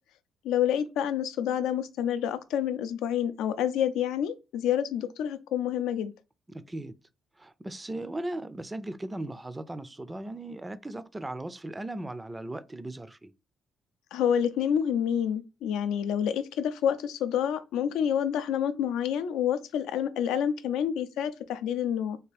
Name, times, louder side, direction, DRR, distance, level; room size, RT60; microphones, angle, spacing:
voice 1, 0.4-6.1 14.1-22.2, left 9 dB, 90° left, 0.4 m, -28 dB
voice 2, 6.5-6.9 7.4-13.3, right 1 dB, 15° right, 0.3 m, -37 dB
3.4 x 2.4 x 3.3 m
cardioid pair, 90°, 0 cm